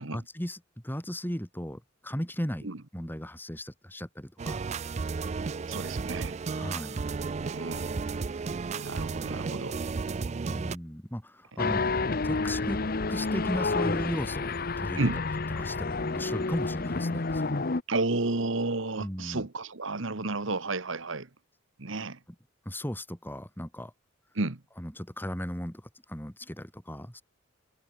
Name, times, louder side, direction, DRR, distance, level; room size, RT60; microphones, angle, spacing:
voice 1, 0.0-2.7 2.9-4.6 6.5-7.0 10.5-11.8 12.2-12.8 13.1-15.1 15.6-17.7 19.0-19.5 22.7-23.9 24.8-25.8 26.1-27.2, equal, 10° left, 3.7 m, -36 dB
sound 1, 4.4-10.8, right 4 dB, 35° right, 0.3 m, -33 dB
voice 2, 5.7-6.3 7.4-7.9 8.7-9.8 15.0-15.2 17.9-21.3 21.8-22.2 24.3-24.6, right 2 dB, 65° right, 1.5 m, -31 dB
sound 2, 11.6-17.8, left 3 dB, 45° left, 0.9 m, -29 dB
head